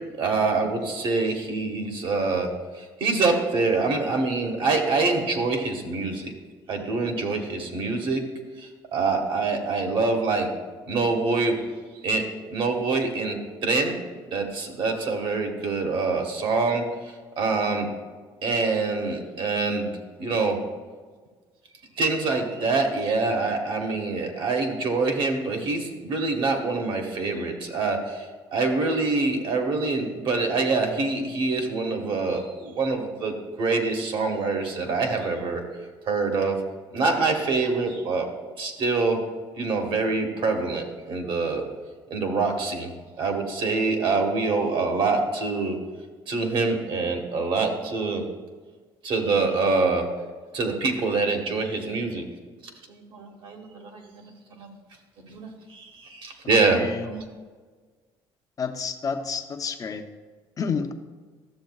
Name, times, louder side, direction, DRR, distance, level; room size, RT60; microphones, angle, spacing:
voice 1, 0.1-6.3 6.7-8.2 8.6-10.5 10.9-11.6 12.0-12.2 12.5-14.0 14.2-16.8 17.4-17.9 18.4-19.9 20.2-20.6 22.0-35.6 36.1-36.6 36.9-38.3 38.6-39.2 39.5-41.6 42.1-45.8 46.3-48.2 49.0-50.1 50.5-52.2 52.9-54.7 55.2-57.2, right 3 dB, 55° right, 3 dB, 1.5 m, -25 dB
voice 2, 56.7-57.1 58.6-60.0 60.6-60.9, left 5 dB, 35° left, 5 dB, 0.7 m, -29 dB
13.0 x 7.3 x 2.4 m, 1.4 s
cardioid pair, 100°, 10 cm